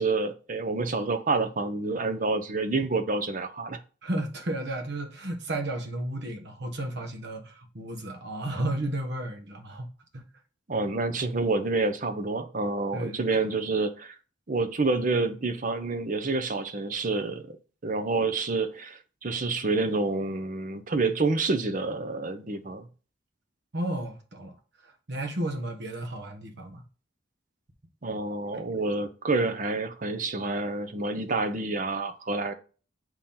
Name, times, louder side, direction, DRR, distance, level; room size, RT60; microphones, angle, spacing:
voice 1, 0.0-3.8 10.7-14.2 14.5-17.6 17.8-22.9 28.0-32.5, right 3 dB, 45° right, 0.7 m, -28 dB
voice 2, 4.0-9.9 10.1-10.2 12.9-13.4 23.7-24.5 24.8-26.8 28.5-28.7, right 1 dB, 60° right, 1.3 m, -33 dB
7.0 x 4.4 x 3.7 m
head